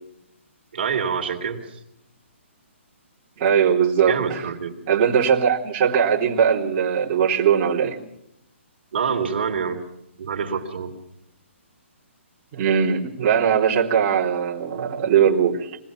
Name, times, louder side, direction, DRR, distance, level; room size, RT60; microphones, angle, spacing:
voice 1, 0.7-1.6 4.0-4.8 8.9-9.8 10.2-10.9, right 6 dB, 50° right, 3 dB, 3.1 m, -26 dB
voice 2, 3.4-4.4 4.9-8.0 12.5-15.8, right 7 dB, 25° right, -5 dB, 3.2 m, -20 dB
24.5 x 19.0 x 6.1 m, 0.81 s
hypercardioid pair, 165°, 7 cm